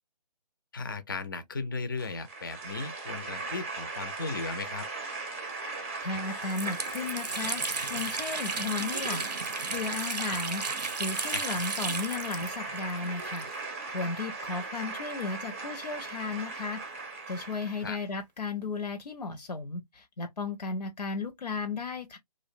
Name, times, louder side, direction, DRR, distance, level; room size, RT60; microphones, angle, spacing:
voice 1, 0.7-4.8 11.3-11.6 17.8-18.0, left 4 dB, 35° left, 0.4 m, -36 dB
sound 1, 2.0-18.0, right 3 dB, 20° right, 0.5 m, -38 dB
Water tap faucet, 5.7-5.8 6.1-13.9 14.1-14.2 15.1-16.6, right 4 dB, 85° right, 0.6 m, -36 dB
voice 2, 6.0-7.6 7.9-9.2 9.7-10.6 11.0-13.5 13.9-16.8 17.3-22.2, left 4 dB, 85° left, 0.5 m, -34 dB
2.5 x 2.0 x 2.4 m
figure-of-eight pair, 150°, 21 cm